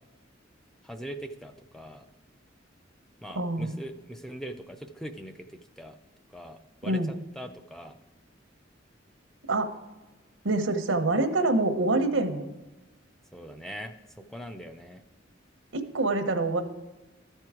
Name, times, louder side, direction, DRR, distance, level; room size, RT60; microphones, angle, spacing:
voice 1, 0.8-2.0 3.2-6.0 6.3-8.0 13.3-15.0, equal, 5° left, 6 dB, 0.4 m, -41 dB
voice 2, 3.3-3.7 6.8-7.1 9.5-9.7 10.4-12.5 15.7-16.6, right 2 dB, 85° right, 7 dB, 0.9 m, -26 dB
13.0 x 4.6 x 4.8 m, 1.2 s
head